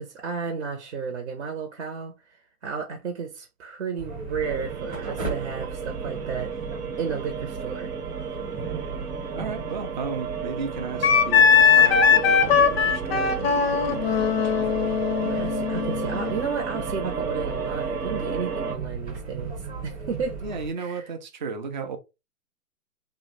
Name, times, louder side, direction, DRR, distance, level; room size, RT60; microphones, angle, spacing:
voice 1, 0.0-2.1 2.6-6.5 7.0-7.9 15.2-20.4 20.8-21.0, right 5 dB, 55° right, 0.8 m, -32 dB
sound 1, 4.0-20.7, right 4 dB, 15° right, 0.8 m, -37 dB
sound 2, 4.4-18.8, right 6 dB, 80° right, 1.0 m, -33 dB
voice 2, 9.3-15.0 20.4-22.0, right 5 dB, 35° right, 0.4 m, -35 dB
Wind instrument woodwind instrument, 11.0-16.4, left 7 dB, 45° left, 0.4 m, -20 dB
2.7 x 2.1 x 3.8 m
hypercardioid pair, 140°, 45 cm